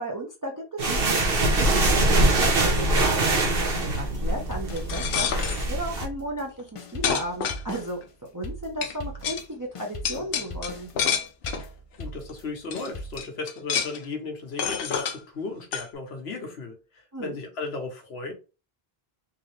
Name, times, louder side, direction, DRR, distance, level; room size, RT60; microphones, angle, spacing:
voice 1, 0.0-8.0 8.3-10.9 17.1-17.4, right 1 dB, 20° right, 0.7 m, -34 dB
sound 1, 0.8-6.1, right 2 dB, 65° right, 1.2 m, -23 dB
sound 2, 3.8-9.5 9.7-13.2, left 1 dB, 40° left, 0.6 m, -40 dB
sound 3, 4.8-5.7 6.6-6.7 7.0-8.0 8.8-8.9 9.2-9.4 10.0-11.7 12.3-12.4 12.7-12.9 13.2-14.0 14.6-15.2 15.7-15.9, left 7 dB, 70° left, 0.8 m, -28 dB
voice 2, 12.0-18.3, left 3 dB, 85° left, 1.2 m, -35 dB
3.8 x 2.8 x 3.2 m
omnidirectional pair, 1.0 m